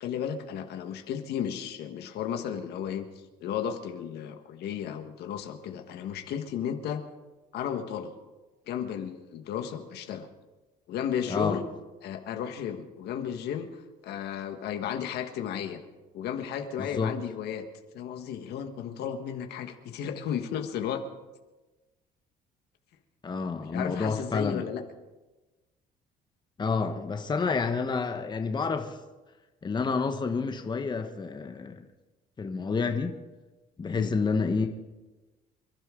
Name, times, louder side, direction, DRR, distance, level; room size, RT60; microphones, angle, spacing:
voice 1, 0.0-3.1 3.4-7.0 7.5-8.1 8.7-10.3 10.9-11.6 12.0-15.8 16.1-17.7 17.9-21.0 23.7-24.8 33.9-34.1, left 9 dB, 75° left, 1.5 m, -34 dB
voice 2, 11.3-11.6 16.8-17.1 23.2-24.6 26.6-29.0 29.6-31.9 32.4-33.1 33.8-34.7, left 4 dB, 25° left, 1.2 m, -29 dB
27.0 x 12.0 x 3.8 m
cardioid pair, 110°, 17 cm